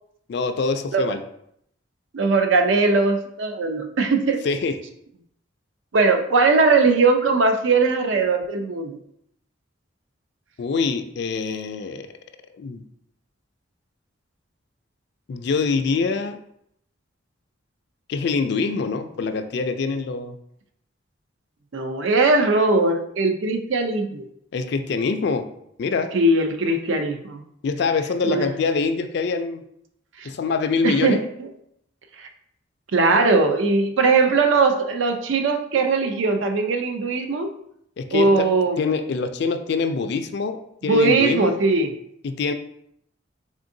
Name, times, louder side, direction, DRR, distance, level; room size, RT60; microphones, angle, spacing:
voice 1, 0.3-1.2 4.4-4.8 10.6-12.1 12.6-12.8 15.3-16.4 18.1-20.4 24.5-25.5 25.8-26.1 27.6-29.6 30.2-31.2 38.0-38.5 38.8-41.5 42.2-42.5, left 4 dB, 60° left, 8 dB, 0.3 m, -24 dB
voice 2, 2.1-4.4 5.9-9.0 21.7-24.2 26.1-27.4 28.2-28.5 30.2-30.3 30.8-31.2 32.2-32.3 32.9-37.5 38.1-38.8 40.9-41.9, right 3 dB, 80° right, 6 dB, 0.5 m, -20 dB
3.7 x 3.5 x 2.6 m, 0.73 s
head